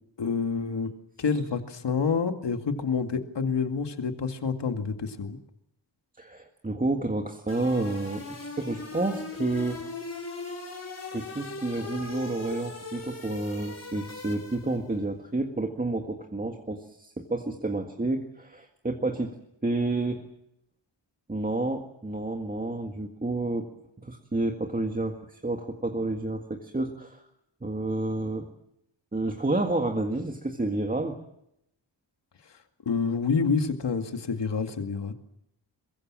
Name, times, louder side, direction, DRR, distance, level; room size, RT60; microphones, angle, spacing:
voice 1, 0.2-0.9 1.2-5.4 32.9-35.1, left 5 dB, 65° left, 6 dB, 2.3 m, -28 dB
voice 2, 6.2-9.8 11.1-19.4 19.6-20.2 21.3-23.7 24.0-27.2 27.6-28.5 29.1-31.2, right 2 dB, 20° right, 3 dB, 1.9 m, -30 dB
sound 1, 7.5-14.9, left 3 dB, 35° left, 5.0 m, -39 dB
23.0 x 22.0 x 7.6 m, 0.79 s
wide cardioid pair, 120°, 45 cm